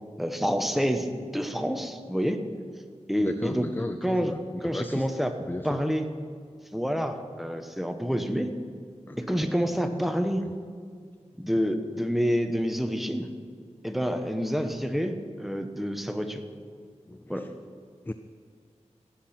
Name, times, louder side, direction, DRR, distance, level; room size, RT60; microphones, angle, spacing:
voice 1, 0.2-2.4 3.1-3.7 4.0-4.3 4.6-5.3 5.6-6.1 6.7-8.5 9.2-10.4 11.4-13.3 13.8-16.4 17.3-17.4, equal, ahead, 6 dB, 1.0 m, -28 dB
voice 2, 3.2-5.1 5.5-5.8 9.1-9.2 10.4-10.5 17.1-17.5 18.1-18.2, left 2 dB, 15° left, 10 dB, 0.4 m, -35 dB
17.0 x 6.0 x 5.9 m, 2.1 s
wide cardioid pair, 45°, 12 cm